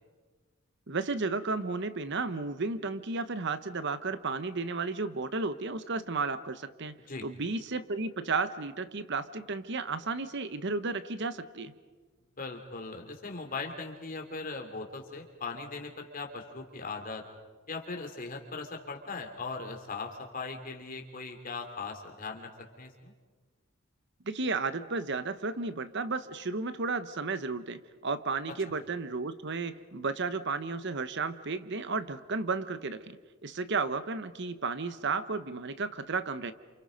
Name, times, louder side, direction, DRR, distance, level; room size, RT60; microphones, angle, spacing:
voice 1, 0.9-7.0 7.2-11.7 24.3-33.2 33.4-36.5, right 4 dB, 60° right, 12 dB, 1.0 m, -33 dB
voice 2, 12.4-17.2 17.7-22.5 22.8-23.1, left 4 dB, 45° left, 3 dB, 3.0 m, -39 dB
30.0 x 28.0 x 5.2 m, 1.4 s
head